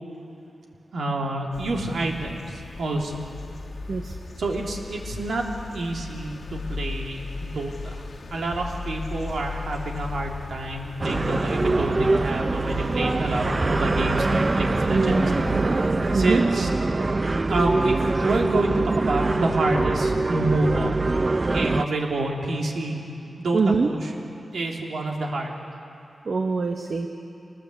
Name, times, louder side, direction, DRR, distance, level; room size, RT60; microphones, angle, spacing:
voice 1, 0.9-3.2 4.4-5.4 5.7-15.3 16.1-16.7 17.5-20.9 21.4-23.1 23.4-24.1 24.5-25.5, right 2 dB, 80° right, 0 dB, 3.2 m, -28 dB
sound 1, 1.5-16.3, left 4 dB, 60° left, 1.7 m, -37 dB
sound 2, 11.0-21.9, right 3 dB, 30° right, 0.5 m, -23 dB
voice 2, 14.9-15.4 16.1-16.4 23.5-23.9 26.3-27.1, right 4 dB, 55° right, 4 dB, 1.2 m, -23 dB
25.5 x 20.0 x 8.2 m, 2.6 s
wide cardioid pair, 100°, 0 cm